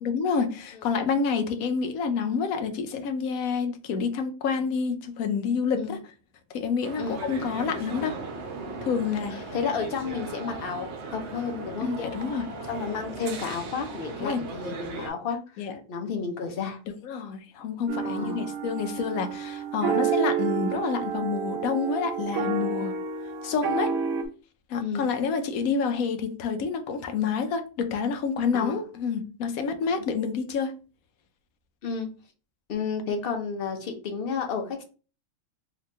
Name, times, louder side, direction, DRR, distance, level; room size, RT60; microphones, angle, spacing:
voice 1, 0.0-6.0 6.5-8.2 8.8-9.5 11.8-12.5 14.2-14.4 15.6-15.7 16.9-22.9 23.4-23.9 24.7-30.7, left 5 dB, 90° left, 1.1 m, -28 dB
sound 1, 6.8-15.1, right 3 dB, 60° right, 0.9 m, -38 dB
voice 2, 9.1-11.9 12.7-16.8 18.0-18.5 24.8-25.1 28.5-28.8 31.8-32.1 32.7-34.8, left 5 dB, 55° left, 0.7 m, -32 dB
sound 2, 17.9-24.2, right 7 dB, 80° right, 1.1 m, -29 dB
2.9 x 2.9 x 3.3 m
omnidirectional pair, 1.4 m